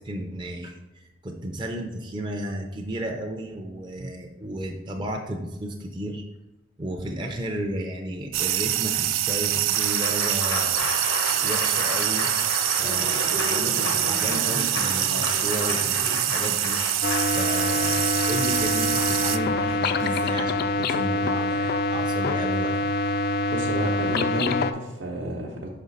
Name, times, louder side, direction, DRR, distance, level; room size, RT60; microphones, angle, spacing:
voice 1, 0.0-6.2 6.8-10.9 11.4-12.4 12.8-22.9, right 1 dB, 25° right, 1 dB, 0.5 m, -33 dB
sound 1, 8.3-19.4, right 13 dB, 80° right, 0.4 m, -25 dB
Applause, 9.4-21.6, left 3 dB, 85° left, 1.1 m, -33 dB
sound 2, 17.0-24.7, left 2 dB, 50° left, 0.4 m, -25 dB
voice 2, 23.5-25.7, equal, 65° right, -2 dB, 0.8 m, -30 dB
5.7 x 5.2 x 4.0 m, 1.0 s
head